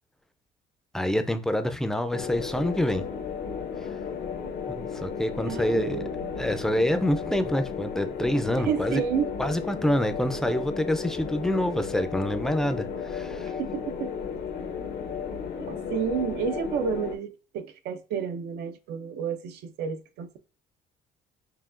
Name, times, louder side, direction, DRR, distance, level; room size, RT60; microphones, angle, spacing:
voice 1, 0.9-3.0 4.7-6.0 6.4-9.0 9.4-13.5, left 1 dB, 5° left, 0.4 m, -27 dB
sound 1, 2.1-17.2, left 6 dB, 65° left, 0.7 m, -34 dB
voice 2, 5.4-6.3 8.6-9.3 13.6-14.1 15.5-20.4, right 7 dB, 80° right, 0.5 m, -31 dB
5.7 x 2.3 x 2.5 m
cardioid pair, 110°, 17 cm